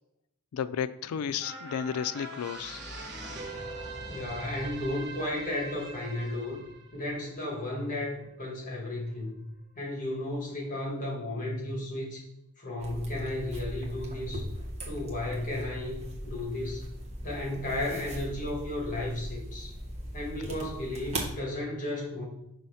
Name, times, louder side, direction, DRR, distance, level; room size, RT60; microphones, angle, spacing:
voice 1, 0.5-2.8, left 8 dB, 80° left, 14 dB, 0.3 m, -32 dB
sound 1, 1.4-8.0 8.5-8.6, right 2 dB, 55° right, 1.3 m, -42 dB
voice 2, 4.1-6.6 6.9-9.4 9.7-12.2 12.6-14.4 14.8-16.8 17.2-19.7 20.1-22.2, left 1 dB, 40° left, -2 dB, 1.6 m, -34 dB
sound 2, 12.8-21.3, right 1 dB, 30° right, 1.2 m, -39 dB
5.7 x 3.1 x 5.5 m, 0.82 s
head